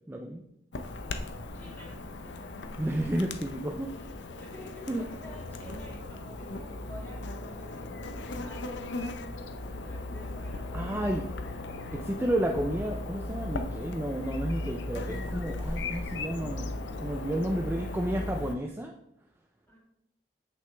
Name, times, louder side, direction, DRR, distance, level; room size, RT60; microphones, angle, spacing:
voice 1, 0.1-0.4 2.8-3.9 4.9-5.1 10.7-11.2 11.9-16.7 17.0-18.9, right 1 dB, 10° right, 2 dB, 0.4 m, -31 dB
Chirp tweet / Buzz, 0.7-18.5, left 2 dB, 85° left, 0.6 m, -37 dB
voice 2, 1.5-2.6 3.9-9.3 9.8-11.2 19.7-19.8, equal, 10° left, -4 dB, 2.2 m, -51 dB
7.6 x 6.2 x 3.4 m, 0.80 s
head